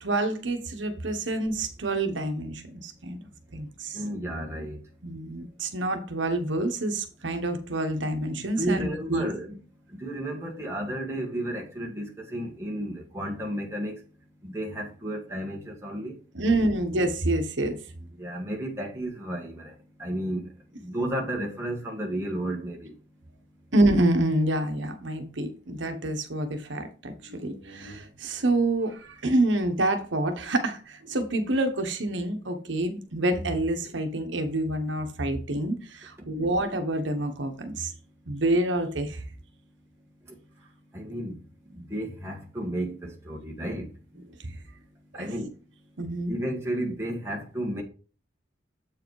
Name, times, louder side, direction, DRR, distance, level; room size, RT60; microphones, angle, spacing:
voice 1, 0.0-3.2 3.5-4.0 5.0-9.3 16.3-17.8 23.7-37.9 38.3-39.2 44.4-44.5 45.2-45.3 46.0-46.3, right 1 dB, 75° right, 1.1 m, -27 dB
voice 2, 3.9-4.8 8.3-9.6 9.9-14.0 14.4-16.2 18.0-19.7 20.0-20.5 20.8-22.9 36.2-36.3 40.3-40.4 40.9-41.4 41.7-43.9 44.1-44.2 45.1-45.5 46.3-47.8, right 1 dB, 15° right, 1.5 m, -33 dB
7.7 x 4.8 x 4.7 m
head